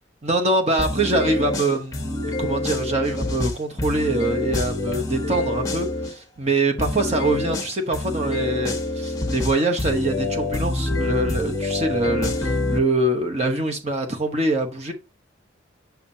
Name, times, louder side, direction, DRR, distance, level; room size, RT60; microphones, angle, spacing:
voice 1, 0.2-14.9, right 2 dB, 35° right, 1.0 m, -24 dB
sound 1, 0.8-6.1 6.8-12.8, left 2 dB, 15° left, 1.3 m, -26 dB
7.2 x 5.9 x 2.7 m
head